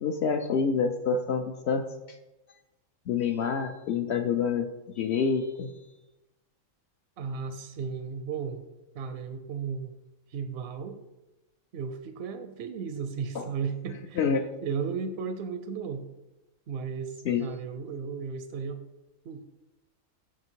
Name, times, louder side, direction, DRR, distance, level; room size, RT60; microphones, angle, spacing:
voice 1, 0.0-2.2 3.1-4.7 5.0-5.7 13.3-13.5 14.2-14.5 17.3-17.5, left 6 dB, 65° left, 7 dB, 0.7 m, -27 dB
voice 2, 7.2-8.6 8.9-10.0 10.3-11.0 11.7-14.3 14.6-16.1 16.7-18.8 19.3-19.4, right 6 dB, 65° right, 8 dB, 0.7 m, -35 dB
6.3 x 5.9 x 4.5 m, 1.0 s
omnidirectional pair, 1.3 m